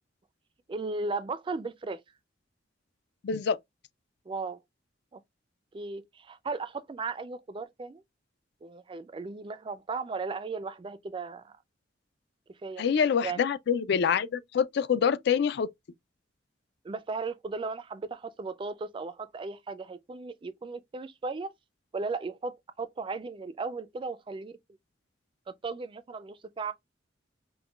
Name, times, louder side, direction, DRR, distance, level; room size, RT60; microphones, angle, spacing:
voice 1, 0.7-2.0 4.3-4.6 5.1-5.2 5.7-8.0 8.6-11.5 12.6-12.8 13.2-13.5 16.8-21.5 21.9-24.6 25.5-26.7, right 4 dB, 25° right, 0.3 m, -36 dB
voice 2, 3.2-3.6 12.8-15.7, left 7 dB, 60° left, 0.4 m, -26 dB
5.4 x 2.2 x 2.3 m
head